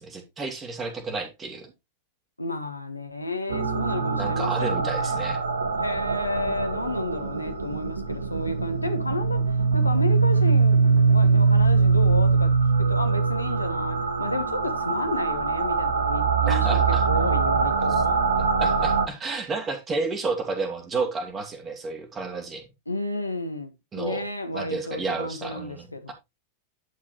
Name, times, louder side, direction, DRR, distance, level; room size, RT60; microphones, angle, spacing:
voice 1, 0.0-1.7 4.2-5.4 16.5-17.0 18.4-22.6 23.9-24.2 24.5-26.1, right 3 dB, 20° right, 2.5 m, -31 dB
voice 2, 2.4-5.3 5.8-18.3 22.9-26.1, left 2 dB, 85° left, 1.3 m, -32 dB
sound 1, 3.5-19.1, right 5 dB, 70° right, 1.2 m, -22 dB
11.0 x 6.1 x 3.0 m
figure-of-eight pair, 90°, 0 cm